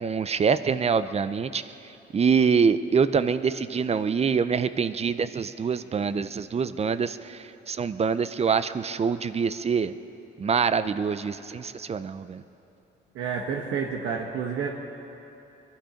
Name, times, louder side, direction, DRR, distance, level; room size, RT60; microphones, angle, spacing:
voice 1, 0.0-1.6 2.1-7.4 7.7-9.9 10.4-12.4, right 6 dB, 30° right, 13 dB, 0.6 m, -25 dB
voice 2, 13.1-14.7, right 6 dB, 85° right, 0 dB, 1.1 m, -29 dB
22.5 x 11.5 x 5.1 m, 2.9 s
cardioid pair, 90°, 20 cm